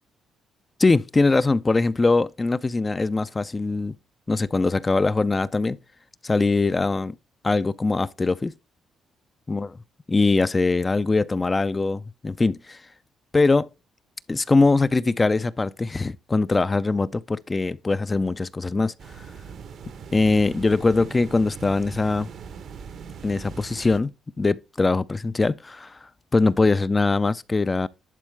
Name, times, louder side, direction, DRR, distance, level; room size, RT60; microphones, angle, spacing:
voice 1, 0.8-3.9 4.3-5.8 6.2-7.1 7.4-8.5 9.5-9.7 10.1-12.8 13.3-13.7 14.3-19.3 20.1-22.3 23.2-24.1 24.4-27.9, left 3 dB, 25° left, 0.4 m, -22 dB
sound 1, 19.0-24.0, right 6 dB, 65° right, 1.0 m, -40 dB
11.0 x 4.3 x 3.3 m
cardioid pair, 90°, 0 cm